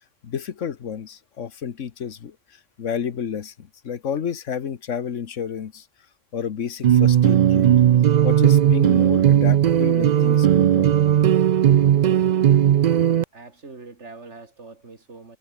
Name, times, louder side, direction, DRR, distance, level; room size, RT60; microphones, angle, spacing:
voice 1, 0.2-5.8 6.3-7.7 8.2-11.0, left 7 dB, 75° left, 1.5 m, -30 dB
sound 1, 6.8-13.2, right 10 dB, 85° right, 0.3 m, -17 dB
voice 2, 13.3-15.4, right 3 dB, 65° right, 3.0 m, -43 dB
omnidirectional pair, 1.3 m